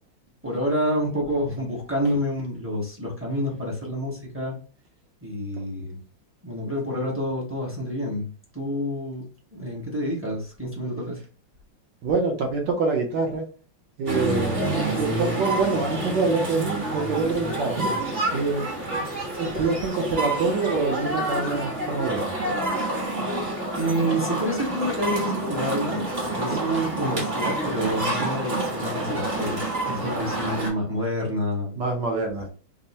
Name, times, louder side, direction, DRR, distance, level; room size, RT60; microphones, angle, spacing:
voice 1, 0.4-4.6 5.2-6.0 6.4-9.2 9.5-11.2 23.8-26.0 26.3-31.8, equal, 10° right, -3 dB, 0.5 m, -28 dB
voice 2, 12.0-13.5 14.0-17.8 18.3-19.0 19.3-22.4 31.8-32.5, right 4 dB, 70° right, 2 dB, 1.4 m, -26 dB
sound 1, 14.1-30.7, right 2 dB, 35° right, 1.3 m, -28 dB
3.5 x 2.1 x 4.0 m, 0.37 s
omnidirectional pair, 2.1 m